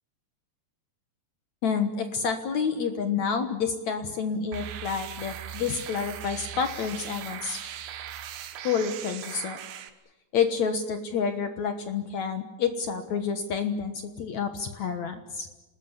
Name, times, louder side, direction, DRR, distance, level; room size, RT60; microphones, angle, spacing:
voice 1, 1.6-7.7 8.6-9.6 10.3-15.5, left 6 dB, 60° left, 7 dB, 2.0 m, -29 dB
sound 1, 4.5-9.9, right 10 dB, 90° right, 3.7 m, -39 dB
27.0 x 20.0 x 8.2 m, 1.1 s
omnidirectional pair, 4.8 m